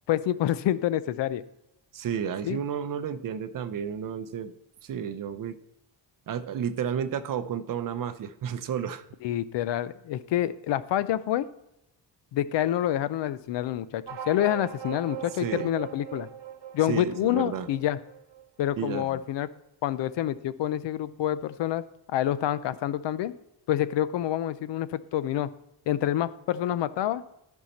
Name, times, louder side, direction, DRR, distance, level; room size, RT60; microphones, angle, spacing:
voice 1, 0.1-1.4 2.4-2.6 9.2-11.4 12.3-16.3 16.7-18.0 18.6-19.5 19.8-21.8 22.1-23.3 23.7-25.5 25.9-27.2, left 12 dB, 75° left, 16 dB, 0.6 m, -27 dB
voice 2, 1.9-4.5 4.8-5.6 6.3-9.0 15.4-15.7 16.9-17.7 18.8-19.2, right 8 dB, 50° right, 11 dB, 0.6 m, -32 dB
sound 1, 14.1-19.0, right 9 dB, 70° right, 1.1 m, -41 dB
13.5 x 5.5 x 4.2 m, 0.85 s
wide cardioid pair, 150°, 43 cm